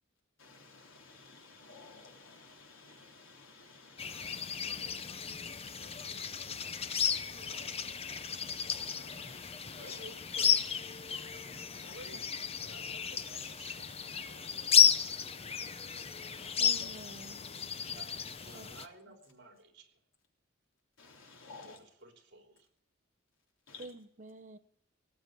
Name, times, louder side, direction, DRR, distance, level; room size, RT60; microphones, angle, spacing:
voice 1, 0.4-4.5 8.7-9.4 9.7-10.0 11.8-12.0 16.3-16.5 21.0-21.8 23.7-23.9, left 4 dB, 85° left, 3.4 m, -54 dB
sound 1, 4.0-18.9, left 8 dB, 30° left, 0.8 m, -33 dB
voice 2, 4.3-5.2 5.7-6.5 7.0-7.7 9.7-10.7 11.9-12.2 12.7-15.3 17.9-20.0 21.6-21.7 22.0-22.7, right 2 dB, 60° right, 3.3 m, -55 dB
voice 3, 16.6-17.4 18.5-18.7 23.8-24.6, right 2 dB, 40° right, 0.8 m, -48 dB
18.0 x 7.7 x 8.2 m
head